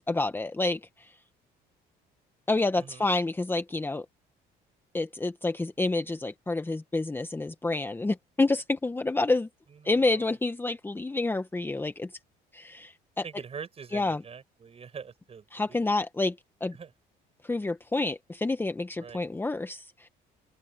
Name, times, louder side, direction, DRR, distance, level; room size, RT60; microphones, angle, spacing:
voice 1, 0.1-1.1 2.5-4.1 4.9-9.5 9.8-12.1 12.5-13.2 13.9-14.2 15.5-16.4 16.6-16.8 17.4-20.1, left 2 dB, 10° left, 1.0 m, -28 dB
voice 2, 9.8-10.2 13.2-15.9 16.7-16.9 19.0-19.2, right 6 dB, 35° right, 7.0 m, -44 dB
open air
cardioid pair, 110°, 17 cm